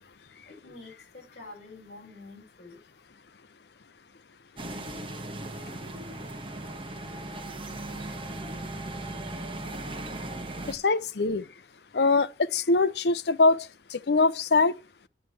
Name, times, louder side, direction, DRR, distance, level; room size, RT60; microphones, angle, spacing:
voice 1, 0.4-2.8, left 3 dB, 40° left, 6.7 m, -48 dB
sound 1, 4.6-10.8, right 1 dB, 30° right, 1.4 m, -37 dB
voice 2, 10.7-11.5 11.9-14.7, left 3 dB, 65° left, 0.6 m, -23 dB
9.8 x 7.6 x 4.7 m
head